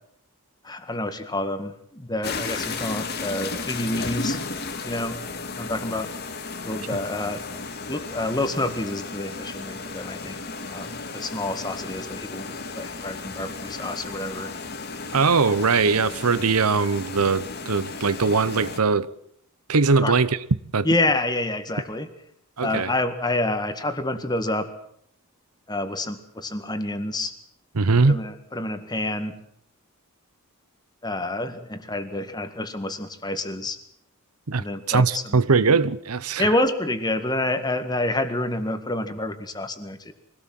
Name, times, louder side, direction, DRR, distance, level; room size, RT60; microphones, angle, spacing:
voice 1, 0.6-4.4 4.8-5.2 5.6-6.1 6.6-7.4 7.9-10.4 10.7-12.5 12.8-14.5 20.0-20.1 20.8-22.1 22.6-24.7 25.7-27.3 28.0-29.4 31.0-33.8 34.6-35.4 36.4-40.1, left 2 dB, 20° left, 1.9 m, -28 dB
sound 1, 2.2-18.8, left 3 dB, 45° left, 1.9 m, -34 dB
voice 2, 15.1-19.1 19.7-20.5 20.7-20.9 22.6-22.9 27.7-28.2 34.5-36.5, right 4 dB, 85° right, 0.9 m, -21 dB
24.0 x 18.0 x 7.7 m
head